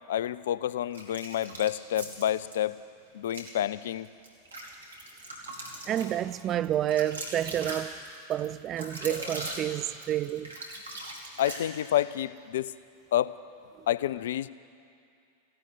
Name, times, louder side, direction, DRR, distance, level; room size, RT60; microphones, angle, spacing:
voice 1, 0.1-2.8 3.1-4.1 11.4-12.7 13.1-13.3 13.9-14.5, left 11 dB, 60° left, 0.3 m, -29 dB
sound 1, 0.9-2.6 3.2-3.5 4.0-12.0, right 1 dB, 75° right, 2.1 m, -40 dB
voice 2, 5.9-8.0 8.3-10.6 13.8-13.9, right 11 dB, 30° right, 0.3 m, -29 dB
15.5 x 11.0 x 8.4 m
figure-of-eight pair, 90°, 0 cm